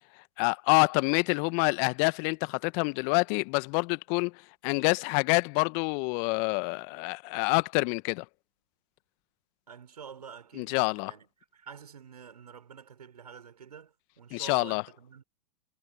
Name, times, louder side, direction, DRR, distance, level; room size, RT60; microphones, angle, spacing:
voice 1, 0.4-4.3 4.6-8.2 10.6-11.1 14.3-14.8, left 32 dB, 40° left, 1.2 m, -27 dB
voice 2, 9.7-11.3 11.5-15.2, right 7 dB, 75° right, 5.9 m, -48 dB
figure-of-eight pair, 105°, 20 cm